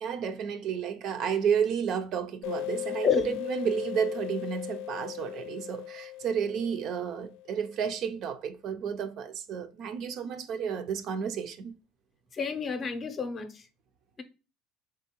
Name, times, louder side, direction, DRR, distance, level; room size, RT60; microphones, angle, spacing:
voice 1, 0.0-11.8, right 7 dB, 50° right, 0.4 m, -31 dB
sound 1, 2.4-7.7, left 16 dB, 75° left, 0.3 m, -38 dB
voice 2, 3.0-3.4 12.3-13.7, left 7 dB, 30° left, 0.6 m, -29 dB
4.0 x 3.4 x 2.9 m
cardioid pair, 135°, 0 cm